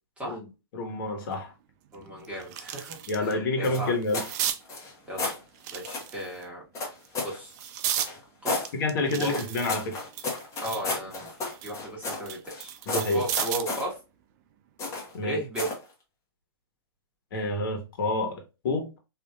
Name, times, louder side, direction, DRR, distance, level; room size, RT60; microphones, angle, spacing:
voice 1, 0.7-1.5 3.1-4.2 8.8-10.0 12.9-13.2 15.1-15.4 17.3-19.0, left 2 dB, 60° left, 1.3 m, -28 dB
sound 1, 1.3-1.4 1.9-3.3 3.7-4.6 5.5-6.4 7.0-8.1 8.6-10.9 11.3-13.8 15.1-15.3, right 10 dB, 45° right, 0.4 m, -34 dB
voice 2, 1.9-3.9 5.1-5.2 5.7-6.6 7.2-7.7 8.4-8.7 9.1-9.4 10.6-11.3 11.6-12.7 13.1-13.9 15.2-15.7, right 1 dB, 10° right, 1.6 m, -35 dB
sound 2, 3.6-4.3 4.6-5.4 5.8-6.1 6.7-7.4 8.0-8.7 9.2-12.6 12.9-13.9 14.8-15.1 15.5-15.8, left 3 dB, 20° left, 1.2 m, -33 dB
3.1 x 2.8 x 2.3 m
hypercardioid pair, 135°, 13 cm